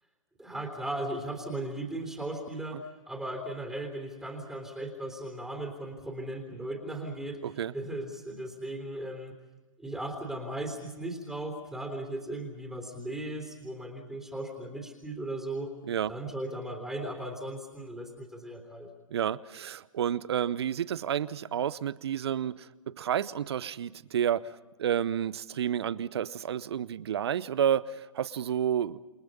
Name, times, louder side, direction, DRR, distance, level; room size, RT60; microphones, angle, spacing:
voice 1, 0.4-7.4 7.7-9.4 9.8-15.7 16.1-18.9, right 1 dB, 5° right, 4 dB, 3.6 m, -37 dB
voice 2, 7.4-7.7 15.9-16.1 19.1-29.0, right 9 dB, 55° right, 19 dB, 0.9 m, -30 dB
29.0 x 24.0 x 5.5 m, 1.2 s
figure-of-eight pair, 130°, 17 cm